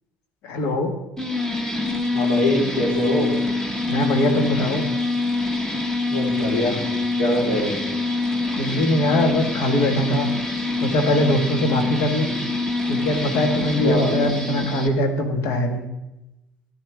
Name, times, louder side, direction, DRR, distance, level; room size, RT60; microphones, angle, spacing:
voice 1, 0.4-1.0 3.9-4.8 8.5-10.3 10.8-12.3 12.9-15.9, left 1 dB, 70° left, 5 dB, 1.7 m, -22 dB
sound 1, 1.2-14.9, left 2 dB, 10° left, 1.6 m, -25 dB
voice 2, 2.1-3.3 6.1-6.8 7.2-7.7 13.8-14.1, left 1 dB, 90° left, -5 dB, 4.0 m, -23 dB
13.5 x 10.0 x 3.5 m, 0.96 s
hypercardioid pair, 70°, 5 cm